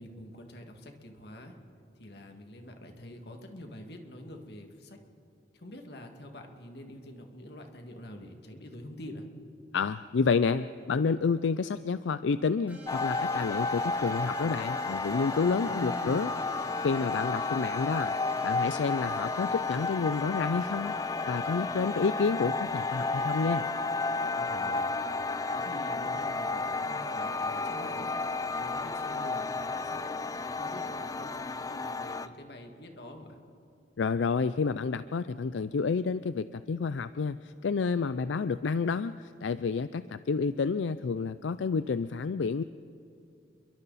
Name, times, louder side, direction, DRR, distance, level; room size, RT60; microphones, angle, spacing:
voice 1, 0.0-1.6 2.0-5.0 5.5-9.3 15.7-16.3 24.4-24.9 25.5-28.1 28.6-30.1 30.4-33.4, left 1 dB, 60° left, 3 dB, 2.2 m, -46 dB
voice 2, 9.7-16.3 16.8-18.2 18.4-20.9 21.3-23.7 34.0-42.6, left 5 dB, 80° left, 14 dB, 0.4 m, -29 dB
sound 1, 12.7-23.7, equal, 10° right, 5.1 m, -50 dB
sound 2, 12.9-32.3, left 3 dB, 20° left, 0.5 m, -32 dB
29.5 x 23.0 x 4.2 m, 2.6 s
head